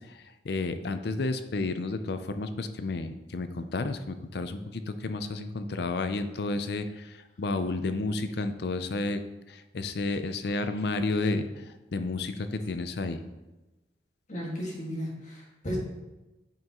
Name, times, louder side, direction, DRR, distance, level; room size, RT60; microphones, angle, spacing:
voice 1, 0.4-9.2 9.5-13.2, left 3 dB, 65° left, 10 dB, 0.5 m, -31 dB
voice 2, 14.3-15.8, equal, 45° left, -2 dB, 1.9 m, -35 dB
9.2 x 5.6 x 3.0 m, 1.1 s
head